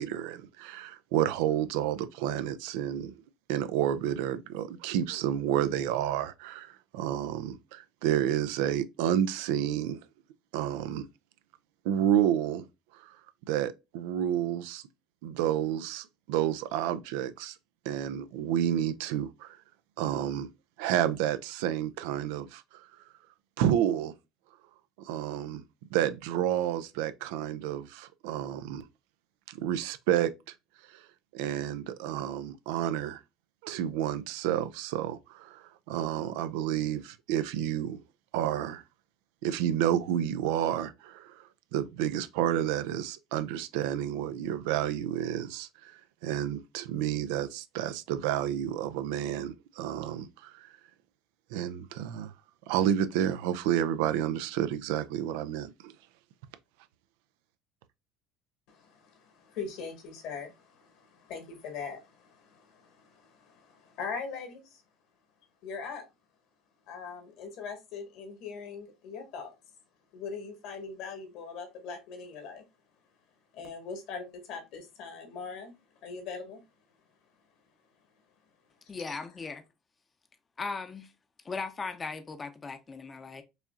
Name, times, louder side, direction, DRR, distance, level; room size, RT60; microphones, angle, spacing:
voice 1, 0.0-3.1 3.5-10.0 10.5-11.1 11.8-12.7 12.9-13.1 13.5-14.8 15.2-17.6 17.9-19.6 20.0-20.5 20.8-22.8 23.6-24.1 25.0-25.6 25.9-28.9 29.5-30.3 30.9-31.0 31.3-33.2 33.6-38.0 38.3-38.8 39.4-41.4 41.7-50.7 51.5-52.3 52.7-55.9, right 10 dB, 80° right, 0.4 m, -30 dB
voice 2, 58.7-64.8 65.6-66.0 66.9-69.5 70.1-72.6 73.5-75.7 76.0-76.6, left 5 dB, 70° left, 1.5 m, -41 dB
voice 3, 78.9-79.6 80.6-81.1 81.4-83.4, left 4 dB, 25° left, 0.6 m, -38 dB
4.8 x 2.8 x 2.4 m
supercardioid pair, 95°, 0 cm